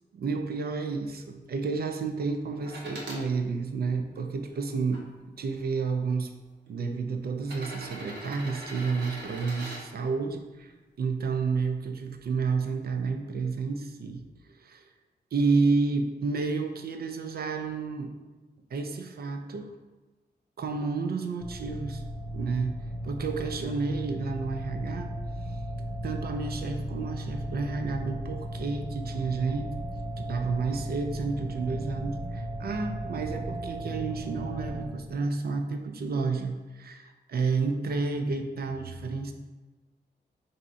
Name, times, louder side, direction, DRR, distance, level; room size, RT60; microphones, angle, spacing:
voice 1, 0.1-5.0 5.4-6.3 6.7-10.7 11.0-14.2 14.6-14.9 15.3-18.1 18.7-19.7 20.6-22.0 22.3-22.7 23.0-25.1 26.0-29.7 30.2-39.3, right 4 dB, 60° right, 6 dB, 0.5 m, -30 dB
sound 1, 2.6-3.2 4.0-5.0 6.0-6.1 7.4-9.8 11.7-11.8, right 1 dB, 80° right, 0.8 m, -41 dB
sound 2, 21.4-34.9, equal, 15° right, 0.5 m, -36 dB
3.6 x 2.7 x 4.2 m, 1.2 s
wide cardioid pair, 95°, 18 cm